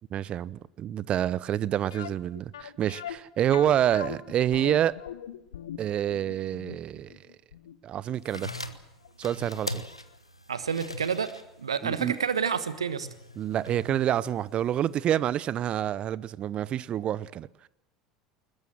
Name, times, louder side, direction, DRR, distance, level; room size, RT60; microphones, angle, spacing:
voice 1, 0.1-4.9 5.8-7.1 7.8-8.5 9.2-9.8 11.8-12.2 13.4-17.5, right 11 dB, 40° right, 0.8 m, -27 dB
sound 1, 1.9-8.8 9.0-9.1 9.7-9.8 10.1-10.2, left 10 dB, 70° left, 1.2 m, -41 dB
sound 2, 8.1-15.0, left 1 dB, 90° left, 1.2 m, -42 dB
voice 2, 10.5-11.3 11.6-13.1, right 6 dB, 80° right, 1.3 m, -29 dB
21.0 x 21.0 x 7.6 m
figure-of-eight pair, 70°, 3 cm